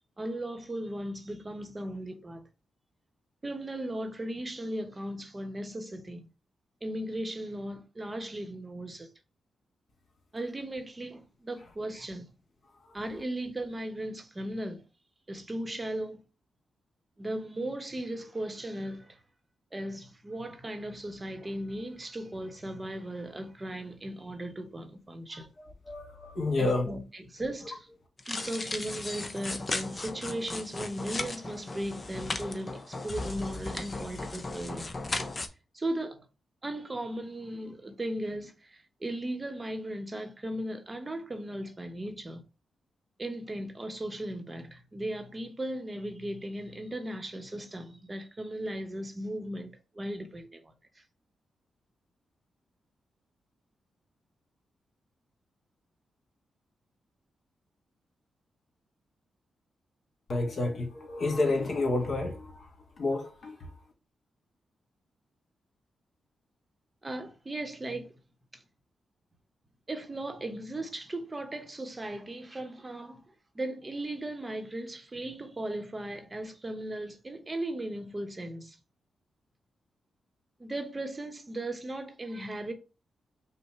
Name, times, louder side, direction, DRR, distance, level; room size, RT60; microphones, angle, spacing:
voice 1, 0.2-2.4 3.4-6.3 6.8-9.1 10.3-12.3 12.9-14.8 15.3-16.2 17.2-19.2 19.7-25.5 26.6-27.9 28.3-34.9 35.7-36.3 36.6-42.4 43.2-51.0 67.0-68.2 68.5-68.6 69.9-73.2 73.5-78.8 80.6-82.7, right 1 dB, 25° right, 0.9 m, -37 dB
voice 2, 25.8-26.9 60.3-62.7 63.0-63.7, left 2 dB, 60° left, 1.9 m, -30 dB
sound 1, 28.2-35.5, left 2 dB, 35° left, 0.7 m, -36 dB
5.5 x 2.1 x 4.3 m
cardioid pair, 65°, 0 cm